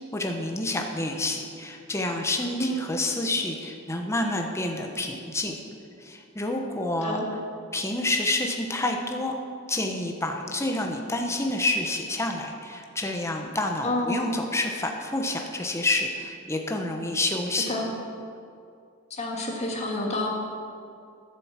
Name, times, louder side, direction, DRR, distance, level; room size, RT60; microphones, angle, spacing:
voice 1, 0.1-5.6 6.0-7.2 7.7-9.4 9.7-17.7, left 2 dB, 15° left, 2 dB, 0.8 m, -28 dB
voice 2, 13.8-14.4 17.7-17.9 19.1-20.3, left 1 dB, 30° left, -1 dB, 1.9 m, -28 dB
12.0 x 7.7 x 7.3 m, 2.4 s
head